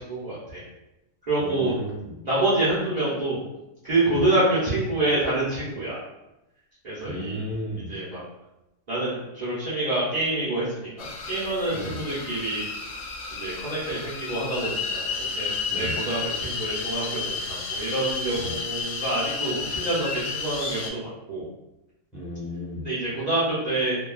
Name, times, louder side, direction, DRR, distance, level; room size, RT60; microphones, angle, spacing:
voice 1, 0.1-0.6 1.3-1.7 2.2-3.4 3.8-6.0 6.8-7.4 7.9-8.2 8.9-12.6 13.3-21.5 22.8-24.0, right 2 dB, 50° right, -11 dB, 0.5 m, -27 dB
voice 2, 1.4-2.1 4.1-4.3 7.0-7.9 11.7-12.0 15.7-15.9 18.3-18.5 22.1-22.8, equal, ahead, -9 dB, 1.1 m, -34 dB
sound 1, 11.0-20.9, left 4 dB, 75° left, 1.1 m, -32 dB
3.1 x 2.2 x 2.3 m, 0.94 s
omnidirectional pair, 1.8 m